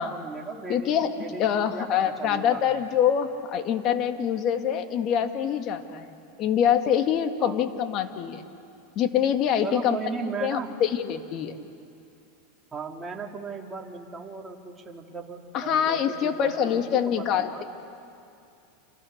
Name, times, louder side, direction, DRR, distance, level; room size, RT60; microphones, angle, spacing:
voice 1, 0.0-2.8 7.4-7.6 9.6-10.7 12.7-17.6, right 4 dB, 20° right, 0 dB, 3.2 m, -37 dB
voice 2, 0.7-1.1 1.4-8.4 9.0-10.0 10.4-11.6 15.5-17.6, left 9 dB, 45° left, 6 dB, 2.2 m, -25 dB
30.0 x 28.0 x 6.7 m, 2.6 s
hypercardioid pair, 110°, 0 cm